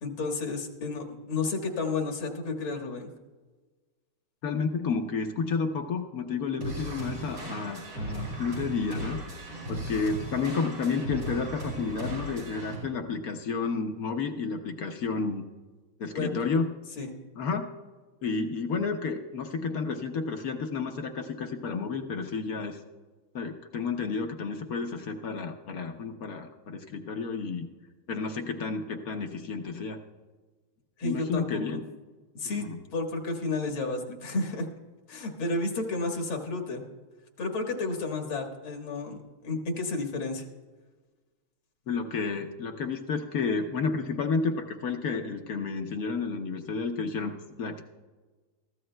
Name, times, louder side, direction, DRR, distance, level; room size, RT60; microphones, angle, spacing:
voice 1, 0.0-3.1 16.1-16.3 17.0-17.1 31.0-31.8 32.3-32.6 32.9-34.7 35.1-36.8 37.4-40.5, left 3 dB, 75° left, 3 dB, 2.3 m, -32 dB
voice 2, 4.4-9.2 9.7-15.4 16.0-16.7 17.4-17.7 18.2-22.8 23.3-27.7 28.1-30.0 31.0-31.8 32.4-32.8 41.9-47.8, left 4 dB, 60° left, 5 dB, 1.0 m, -31 dB
sound 1, 6.6-12.8, right 1 dB, 90° right, 5.9 m, -37 dB
21.5 x 14.5 x 2.2 m, 1.3 s
omnidirectional pair, 2.3 m